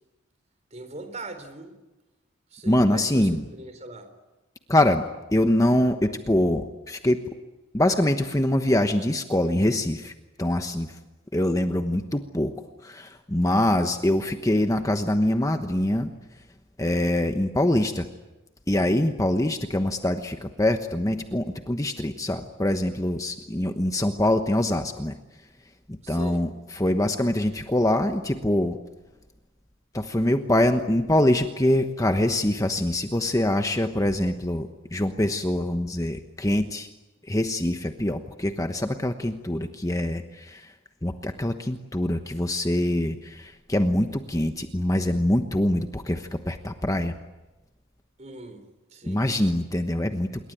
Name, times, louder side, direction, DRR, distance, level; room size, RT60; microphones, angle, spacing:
voice 1, 0.7-1.8 2.5-4.1 26.0-26.4 48.2-49.3, right 2 dB, 35° right, 8 dB, 4.0 m, -40 dB
voice 2, 2.6-3.4 4.7-5.0 5.3-7.2 7.7-10.1 10.4-11.0 11.3-12.5 12.8-16.4 16.8-18.1 18.7-25.1 25.9-28.8 29.9-36.9 37.2-40.7 41.0-47.1 49.0-50.5, left 1 dB, 15° left, 6 dB, 1.1 m, -24 dB
27.0 x 22.5 x 9.3 m, 1.1 s
head